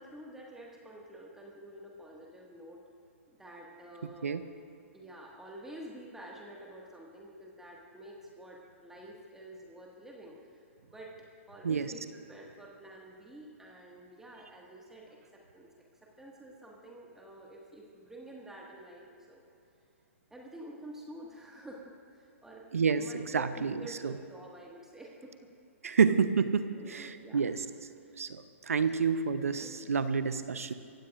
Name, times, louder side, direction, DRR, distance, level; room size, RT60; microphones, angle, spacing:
voice 1, 0.0-2.8 3.3-4.5 4.9-10.6 10.9-11.2 11.5-19.4 20.3-22.7 22.9-25.5 26.7-27.4 28.0-28.2 28.8-29.0 29.6-29.9, right 1 dB, 5° right, -2 dB, 1.9 m, -49 dB
voice 2, 22.7-24.1 25.8-27.6 28.2-30.7, right 5 dB, 80° right, 11 dB, 0.8 m, -29 dB
23.5 x 16.0 x 2.6 m, 2.7 s
hypercardioid pair, 120°, 8 cm